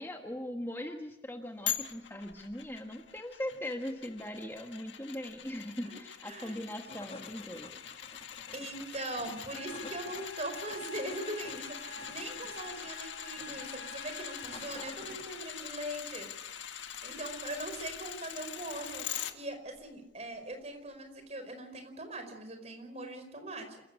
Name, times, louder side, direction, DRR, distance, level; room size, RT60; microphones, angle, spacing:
voice 1, 0.0-7.7, left 1 dB, 15° left, 3 dB, 1.5 m, -40 dB
sound 1, 1.7-19.3 19.8-19.9, left 9 dB, 80° left, 1.6 m, -43 dB
voice 2, 6.2-6.6 8.5-16.3 17.0-23.8, right 1 dB, 35° right, 7 dB, 4.9 m, -41 dB
sound 2, 6.6-15.7, left 2 dB, 35° left, 2.0 m, -52 dB
Trumpet, 9.5-14.7, left 2 dB, 60° left, 3.4 m, -48 dB
28.0 x 15.5 x 8.4 m, 0.92 s
head